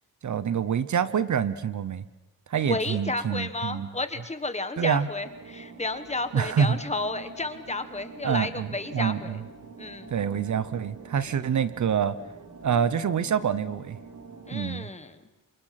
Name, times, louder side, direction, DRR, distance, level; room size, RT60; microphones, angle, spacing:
voice 1, 0.2-2.0 2.5-3.9 4.8-5.1 6.3-6.8 8.2-8.7 8.9-9.4 10.1-12.1 12.6-14.0 14.5-14.9, right 7 dB, 55° right, 14 dB, 0.9 m, -26 dB
voice 2, 2.6-9.4 9.8-10.1 14.5-15.2, left 2 dB, 20° left, 9 dB, 1.3 m, -32 dB
sound 1, 5.2-14.8, right 4 dB, 90° right, 3.3 m, -46 dB
28.5 x 26.0 x 5.9 m, 1.1 s
wide cardioid pair, 170°, 35 cm